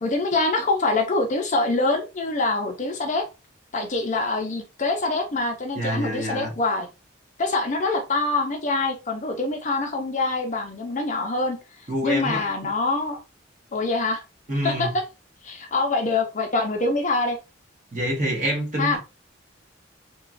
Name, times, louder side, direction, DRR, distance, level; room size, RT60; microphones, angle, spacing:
voice 1, 0.0-3.2 3.7-6.9 7.4-11.6 12.0-13.2 13.7-14.2 14.6-14.9 15.4-17.4 18.8-19.0, left 3 dB, 40° left, 0.5 m, -25 dB
voice 2, 5.7-6.5 11.9-12.4 14.5-15.0 17.9-19.0, right 1 dB, 40° right, 1.0 m, -26 dB
2.9 x 2.3 x 2.5 m
head